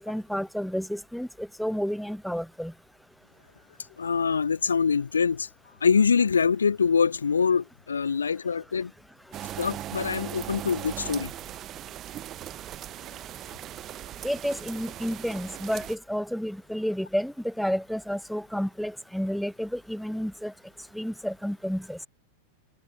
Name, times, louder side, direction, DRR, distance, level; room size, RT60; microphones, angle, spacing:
voice 1, 0.0-2.7 14.2-20.5 20.9-22.0, equal, ahead, 0.5 m, -30 dB
voice 2, 4.0-5.5 5.8-8.9 9.6-11.3, left 6 dB, 75° left, 1.9 m, -24 dB
sound 1, 9.3-16.0, right 12 dB, 30° right, 1.1 m, -39 dB
figure-of-eight pair, 90°, 0 cm